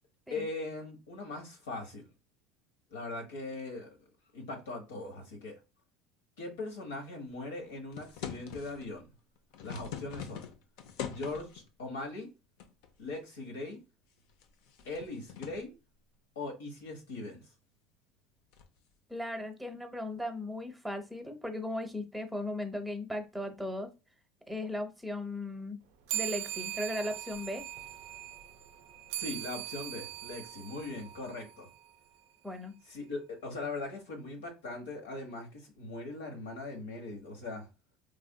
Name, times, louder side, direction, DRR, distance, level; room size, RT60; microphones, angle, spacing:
voice 1, 0.3-2.1 2.9-4.0 4.3-5.5 6.4-9.0 9.6-10.4 11.0-12.3 13.0-13.8 14.9-15.7 16.3-17.5 29.2-31.7 32.9-37.7, left 2 dB, 90° left, 1.0 m, -40 dB
sound 1, 7.9-8.9 9.4-11.6 12.6-13.1 13.5-13.6 14.2-15.7 18.5-18.8, left 8 dB, 70° left, 0.5 m, -43 dB
voice 2, 19.1-23.9 24.5-25.8 26.1-27.6 32.4-32.7, left 1 dB, 5° right, 0.7 m, -37 dB
sound 2, 26.1-31.9, right 14 dB, 75° right, 0.4 m, -40 dB
3.3 x 2.5 x 2.2 m
hypercardioid pair, 90°, 0 cm